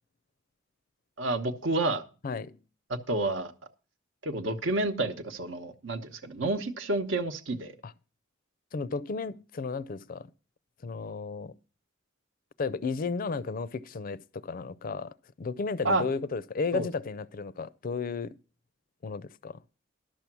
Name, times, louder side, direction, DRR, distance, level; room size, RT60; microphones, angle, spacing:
voice 1, 1.2-2.0 2.9-3.5 4.2-7.7 15.8-16.0 16.7-16.9, right 2 dB, 70° right, 1.0 m, -29 dB
voice 2, 2.2-2.6 7.8-7.9 8.7-10.3 10.8-11.6 12.6-18.4 19.0-19.6, left 4 dB, 45° left, 0.4 m, -34 dB
11.5 x 6.9 x 6.0 m
head